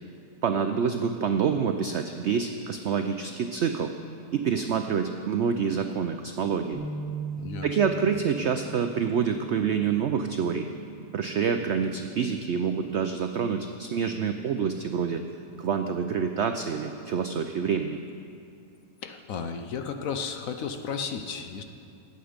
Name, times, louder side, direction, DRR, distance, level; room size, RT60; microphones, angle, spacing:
voice 1, 0.4-3.9 4.3-6.8 7.6-10.7 11.1-15.2 15.6-18.0, right 6 dB, 80° right, 7 dB, 0.6 m, -27 dB
sound 1, 6.7-13.0, right 4 dB, 40° right, 1.8 m, -41 dB
voice 2, 7.4-7.8 19.0-21.6, left 6 dB, 65° left, 7 dB, 1.0 m, -33 dB
19.0 x 8.1 x 5.1 m, 2.5 s
omnidirectional pair, 1.8 m